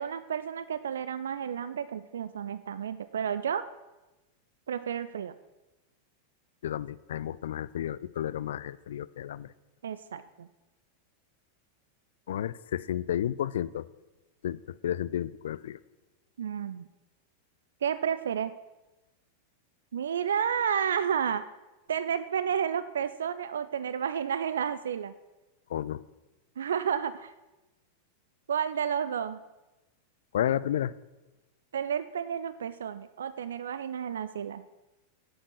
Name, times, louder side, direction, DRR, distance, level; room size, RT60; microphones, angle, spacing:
voice 1, 0.0-3.6 4.7-5.3 9.8-10.5 16.4-16.9 17.8-18.5 19.9-21.4 21.9-25.1 26.6-27.3 28.5-29.4 31.7-34.6, right 8 dB, 65° right, 14 dB, 0.4 m, -31 dB
voice 2, 6.6-9.5 12.3-13.8 14.4-15.8 25.7-26.0 30.3-30.9, left 11 dB, 60° left, 19 dB, 0.3 m, -32 dB
10.5 x 7.5 x 6.3 m, 1.1 s
figure-of-eight pair, 90°, 0 cm